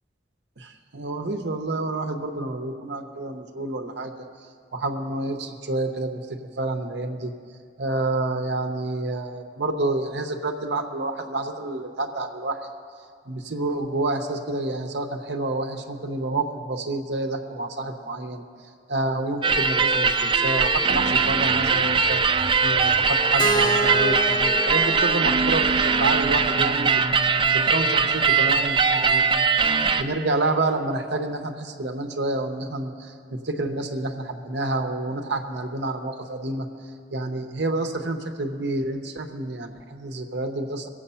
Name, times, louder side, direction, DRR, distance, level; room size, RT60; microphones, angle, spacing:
voice 1, 0.6-4.1 4.7-6.2 6.6-7.3 7.8-12.6 13.3-18.4 18.9-22.2 22.6-27.0 27.5-29.4 30.0-36.7 37.1-40.9, right 2 dB, 70° right, 5 dB, 0.9 m, -28 dB
sound 1, 19.4-30.0, right 5 dB, 25° right, 0.4 m, -21 dB
Keyboard (musical), 23.4-27.3, equal, 25° left, 0.7 m, -30 dB
21.5 x 7.8 x 5.6 m, 2.2 s
head